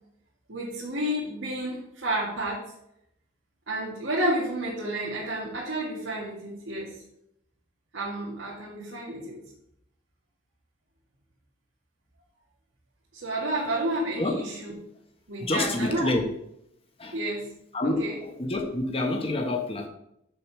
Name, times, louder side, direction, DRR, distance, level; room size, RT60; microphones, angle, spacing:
voice 1, 0.5-2.6 3.7-7.0 7.9-9.4 13.1-14.7 15.3-16.1 17.1-17.4 18.0-18.1, right 1 dB, 75° right, -5 dB, 1.9 m, -30 dB
voice 2, 15.4-16.3 17.0-17.2 17.7-19.9, left 2 dB, 30° left, 2 dB, 1.3 m, -27 dB
6.7 x 5.1 x 6.2 m, 0.78 s
head